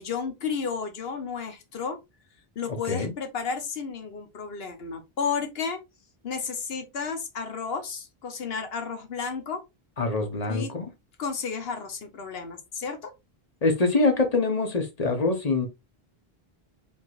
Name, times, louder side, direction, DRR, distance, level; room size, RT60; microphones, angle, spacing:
voice 1, 0.0-2.0 2.6-5.8 6.2-9.6 10.5-10.7 11.2-13.1, left 5 dB, 70° left, 1.2 m, -32 dB
voice 2, 10.0-10.8 13.6-15.7, left 3 dB, 40° left, 1.1 m, -24 dB
4.7 x 3.7 x 2.4 m
omnidirectional pair, 1.1 m